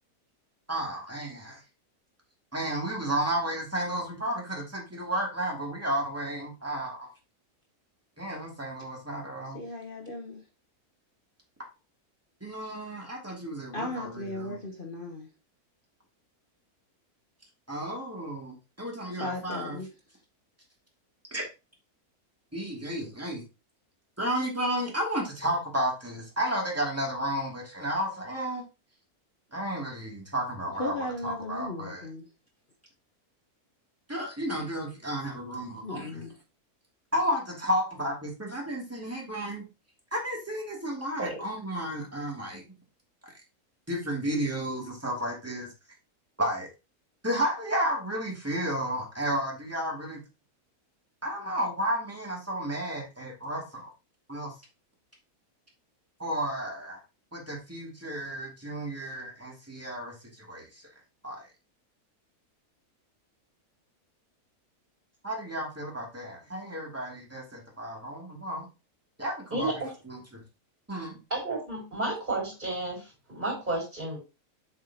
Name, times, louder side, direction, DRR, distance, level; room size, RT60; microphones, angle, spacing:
voice 1, 0.7-1.6 2.5-7.1 8.2-9.6 12.4-14.6 17.7-19.8 21.3-21.4 22.5-23.4 24.2-28.6 29.5-32.0 34.1-36.2 37.1-39.6 40.1-42.6 43.9-45.7 46.4-46.7 47.2-50.2 51.2-53.9 54.3-54.5 56.2-57.0 57.3-60.8 61.2-61.4 65.2-68.7 69.2-69.7 70.0-70.4 70.9-71.2, equal, 10° right, 2.7 m, -32 dB
voice 2, 9.5-10.4 13.7-15.3 19.1-19.9 30.8-32.2 35.8-36.4, left 2 dB, 40° left, 1.2 m, -36 dB
voice 3, 69.5-69.9 71.3-74.2, right 2 dB, 30° right, 4.4 m, -32 dB
7.4 x 7.1 x 2.9 m
omnidirectional pair, 1.6 m